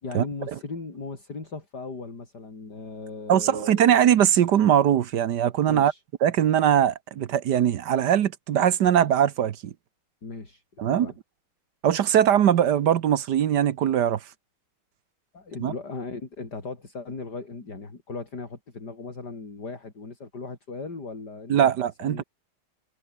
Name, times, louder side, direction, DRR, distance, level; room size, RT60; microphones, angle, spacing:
voice 1, 0.0-4.0 5.7-6.0 10.2-10.6 10.9-11.1 15.3-21.7 22.0-22.2, left 3 dB, 50° left, 4.8 m, -37 dB
voice 2, 3.3-5.9 6.2-9.7 10.8-11.1 11.8-14.2 15.6-15.7 21.5-22.2, right 10 dB, 60° right, 1.4 m, -21 dB
omnidirectional pair, 2.4 m